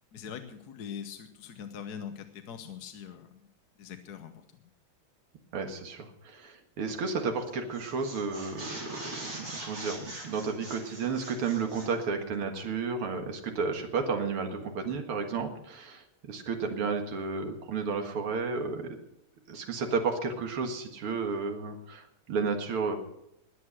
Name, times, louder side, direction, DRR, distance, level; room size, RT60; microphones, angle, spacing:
voice 1, 0.1-3.5 3.8-4.6, left 7 dB, 55° left, 7 dB, 1.3 m, -42 dB
voice 2, 5.5-19.0 19.5-23.0, right 5 dB, 80° right, 4 dB, 2.6 m, -32 dB
sound 1, 7.2-7.4 7.7-11.9, right 1 dB, 55° right, 5.0 m, -43 dB
21.0 x 8.0 x 6.3 m, 0.81 s
omnidirectional pair, 2.4 m